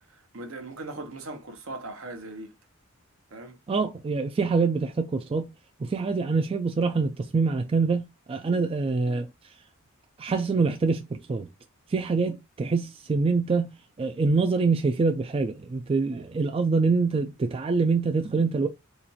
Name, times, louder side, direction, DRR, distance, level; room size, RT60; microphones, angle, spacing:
voice 1, 0.0-2.5 3.3-3.6, right 2 dB, 70° right, 0.9 m, -39 dB
voice 2, 3.7-5.5 5.8-9.3 10.2-11.5 11.9-13.7 14.0-18.7, right 4 dB, 25° right, 0.3 m, -25 dB
4.1 x 2.5 x 2.8 m
head